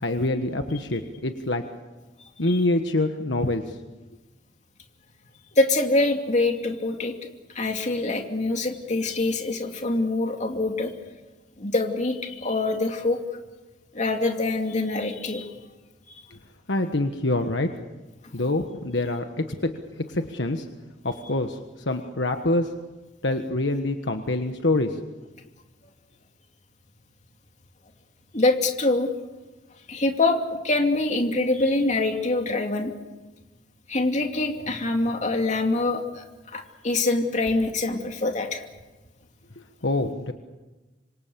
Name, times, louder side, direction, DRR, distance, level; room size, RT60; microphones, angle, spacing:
voice 1, 0.0-1.6 2.4-3.8 16.7-17.7 18.3-19.7 20.0-20.7 21.0-22.7 23.2-25.1 39.8-40.3, left 2 dB, 70° left, 6 dB, 1.4 m, -25 dB
voice 2, 5.6-7.1 7.5-10.9 11.6-13.2 13.9-15.5 28.3-29.1 29.9-30.4 30.6-32.9 33.9-38.6, left 2 dB, 40° left, 3 dB, 2.7 m, -24 dB
27.0 x 25.0 x 7.0 m, 1.1 s
head